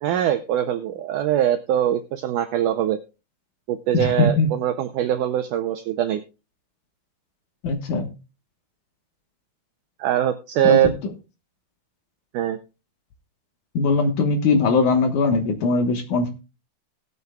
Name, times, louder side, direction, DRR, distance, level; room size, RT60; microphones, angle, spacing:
voice 1, 0.0-3.0 3.7-6.2 10.0-10.9 12.3-12.6, right 11 dB, 85° right, 7 dB, 1.8 m, -22 dB
voice 2, 3.9-4.5 7.6-8.1 10.6-10.8 13.7-16.3, left 3 dB, 65° left, 5 dB, 2.4 m, -20 dB
19.0 x 8.1 x 2.3 m, 0.30 s
omnidirectional pair, 4.4 m